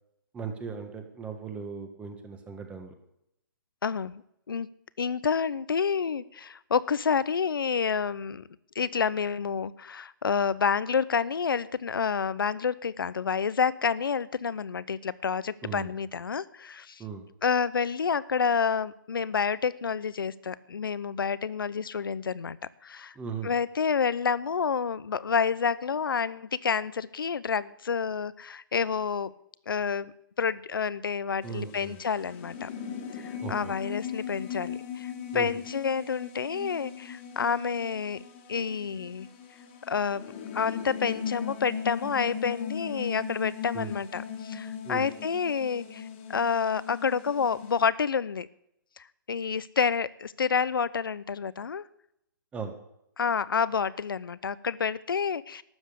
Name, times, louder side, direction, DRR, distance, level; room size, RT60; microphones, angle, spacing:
voice 1, 0.3-2.9 15.6-15.9 17.0-17.2 23.2-23.5 31.4-32.0 33.4-33.7 35.3-35.5 43.7-43.9 44.8-45.0 52.5-52.7, right 6 dB, 10° right, 6 dB, 1.4 m, -37 dB
voice 2, 3.8-4.7 5.0-8.5 8.7-17.0 17.4-22.6 22.8-23.1 23.4-29.3 29.7-32.7 33.1-38.2 38.5-39.3 39.9-40.2 40.5-48.5 49.0-51.8 53.2-55.6, left 6 dB, 80° left, 18 dB, 0.7 m, -29 dB
sound 1, 31.4-47.9, left 7 dB, 35° left, 1.9 m, -38 dB
12.5 x 7.3 x 8.5 m, 0.79 s
hypercardioid pair, 145°, 12 cm